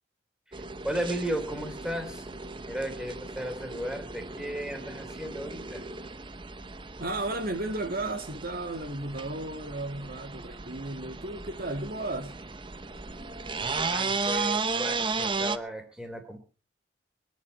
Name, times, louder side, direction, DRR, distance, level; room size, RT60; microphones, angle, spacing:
voice 1, 0.5-2.4 2.7-5.9 13.9-16.4, equal, 5° right, 3.5 m, -35 dB
sound 1, 0.5-15.6, right 4 dB, 25° right, 0.8 m, -35 dB
voice 2, 7.0-12.4, right 2 dB, 50° right, 1.8 m, -34 dB
24.0 x 10.5 x 4.1 m
head